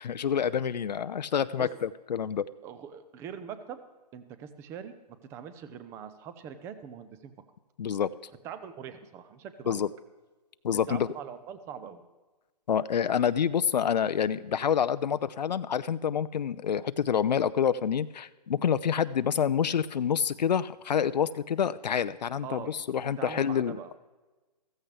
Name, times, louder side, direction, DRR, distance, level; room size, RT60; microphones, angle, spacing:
voice 1, 0.0-2.5 7.8-8.1 9.7-9.9 10.6-11.1 12.7-23.8, left 8 dB, 80° left, 13 dB, 0.5 m, -27 dB
voice 2, 2.6-3.8 4.1-4.9 5.3-7.3 8.4-9.8 10.9-12.0 22.4-22.7 23.2-24.0, right 8 dB, 10° right, 12 dB, 0.5 m, -42 dB
14.5 x 14.5 x 3.4 m, 1.2 s
hypercardioid pair, 150°, 21 cm